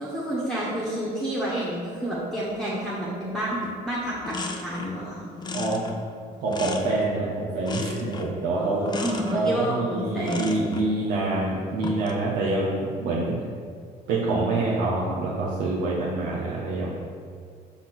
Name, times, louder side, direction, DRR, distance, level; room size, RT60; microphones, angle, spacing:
voice 1, 0.0-3.6 3.8-5.2 8.5-10.6, right 1 dB, 5° left, -7 dB, 1.5 m, -29 dB
sound 1, 3.6-3.8 4.1-5.0 5.4-7.2 7.6-8.4 8.9-9.4 10.2-10.9 11.7-12.2, left 3 dB, 25° left, 0.7 m, -35 dB
voice 2, 5.5-5.8 6.4-8.9 9.3-13.4 14.1-16.9, right 2 dB, 80° right, -6 dB, 1.3 m, -26 dB
5.9 x 4.3 x 6.0 m, 2.1 s
cardioid pair, 110°, 17 cm